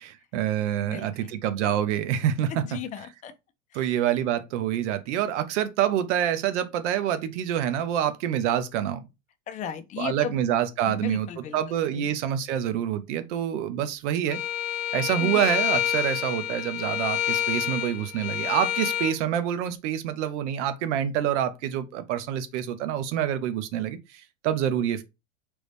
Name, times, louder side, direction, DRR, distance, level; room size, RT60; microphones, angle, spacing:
voice 1, 0.0-2.6 3.7-9.0 10.0-14.4 14.9-25.0, right 10 dB, 75° right, 0.7 m, -27 dB
voice 2, 0.8-1.3 2.6-3.3 3.7-3.9 9.5-10.4 10.9-11.6 11.9-12.0 15.2-15.4, left 9 dB, 20° left, 0.4 m, -36 dB
Bowed string instrument, 14.3-19.2, left 11 dB, 85° left, 0.8 m, -28 dB
3.1 x 2.6 x 3.3 m
supercardioid pair, 120°, 36 cm